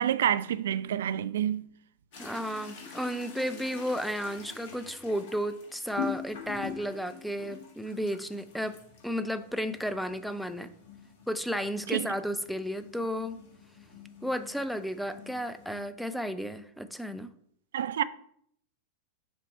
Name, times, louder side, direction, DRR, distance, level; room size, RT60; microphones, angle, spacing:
voice 1, 0.0-1.7 11.9-12.1 17.7-18.0, right 10 dB, 60° right, 0.3 m, -28 dB
sound 1, 2.1-15.9, left 7 dB, 50° left, 1.4 m, -44 dB
voice 2, 2.2-8.8 9.0-10.7 11.3-13.4 14.2-17.3, equal, ahead, 0.5 m, -33 dB
6.8 x 2.9 x 4.9 m
figure-of-eight pair, 90°, 0 cm